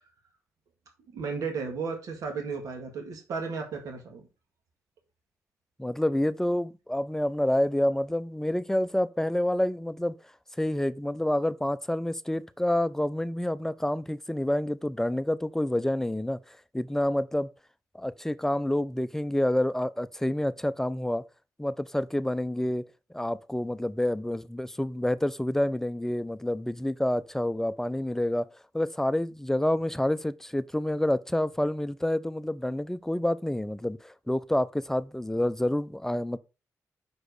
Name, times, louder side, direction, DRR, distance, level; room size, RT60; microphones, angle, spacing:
voice 1, 1.1-4.3, right 5 dB, 85° right, 1.9 m, -34 dB
voice 2, 5.8-10.2 10.6-17.5 18.0-21.2 21.6-22.9 23.1-28.5 28.7-36.4, left 1 dB, 5° left, 0.5 m, -28 dB
6.2 x 5.0 x 6.5 m
cardioid pair, 90°, 6 cm